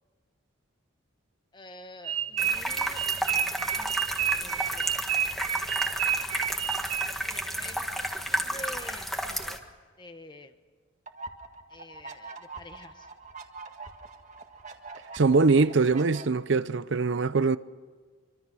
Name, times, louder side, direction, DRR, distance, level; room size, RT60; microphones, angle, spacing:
voice 1, 1.5-5.0 7.2-9.6 10.0-10.5 11.7-13.1, left 2 dB, 20° left, 1.3 m, -48 dB
sound 1, 2.0-7.4, right 9 dB, 85° right, 1.0 m, -29 dB
sound 2, 2.4-9.6, equal, ahead, 1.6 m, -32 dB
sound 3, 11.1-16.2, right 3 dB, 35° right, 1.8 m, -44 dB
voice 2, 15.1-17.6, right 4 dB, 60° right, 0.6 m, -22 dB
25.5 x 25.0 x 6.2 m
head